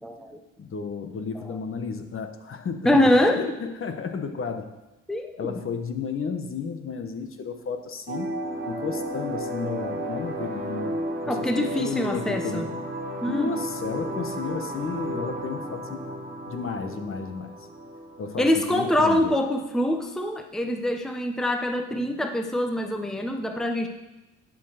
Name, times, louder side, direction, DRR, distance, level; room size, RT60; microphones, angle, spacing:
voice 1, 0.0-0.4 1.3-1.6 2.8-3.4 5.1-5.6 11.3-12.7 13.2-13.6 18.4-23.9, left 1 dB, ahead, 5 dB, 0.8 m, -24 dB
voice 2, 0.6-3.1 3.4-4.7 5.4-8.3 8.7-11.0 11.2-12.7 13.3-16.0 16.5-17.5 18.2-19.3, left 5 dB, 45° left, 7 dB, 1.1 m, -32 dB
sound 1, 8.1-19.1, right 1 dB, 35° right, 1.8 m, -33 dB
11.0 x 4.9 x 6.4 m, 1.0 s
cardioid pair, 90°, 30 cm